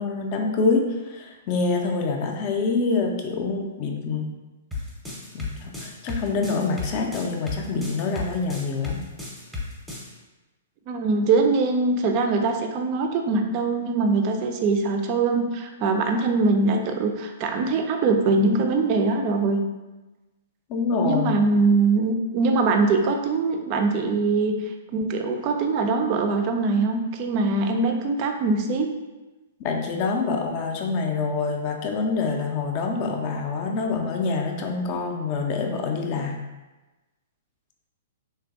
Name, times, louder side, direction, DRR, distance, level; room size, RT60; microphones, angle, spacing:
voice 1, 0.0-4.3 5.3-9.0 20.7-21.4 29.6-36.4, left 4 dB, 35° left, 2 dB, 0.4 m, -26 dB
sound 1, 4.7-10.1, left 3 dB, ahead, 0.7 m, -33 dB
voice 2, 10.9-19.6 21.0-24.5 24.9-28.9, right 3 dB, 35° right, 4 dB, 0.3 m, -22 dB
3.1 x 2.5 x 2.5 m, 1.1 s
figure-of-eight pair, 110°, 0 cm